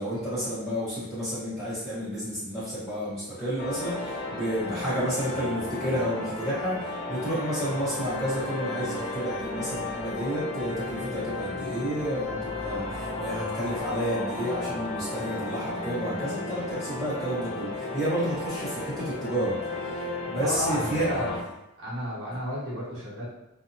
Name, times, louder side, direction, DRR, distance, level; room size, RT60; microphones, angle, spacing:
voice 1, 0.0-19.6 19.8-21.1, equal, ahead, -12 dB, 1.4 m, -31 dB
sound 1, 3.6-21.4, left 2 dB, 30° left, 0.4 m, -34 dB
voice 2, 20.4-21.4 21.8-23.3, equal, 65° right, -8 dB, 0.9 m, -32 dB
2.7 x 2.0 x 2.8 m, 0.92 s
head